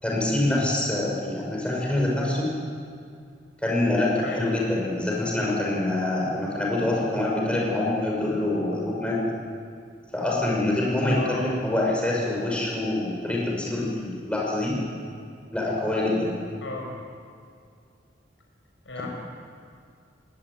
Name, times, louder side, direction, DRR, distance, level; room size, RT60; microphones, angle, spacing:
voice 1, 0.0-2.5 3.6-9.2 10.1-14.8 15.5-16.3, left 1 dB, 5° left, -3 dB, 6.1 m, -25 dB
voice 2, 11.1-11.4 16.6-17.0 18.8-19.1, left 2 dB, 85° left, 0 dB, 6.1 m, -34 dB
20.0 x 18.5 x 9.2 m, 2.3 s
head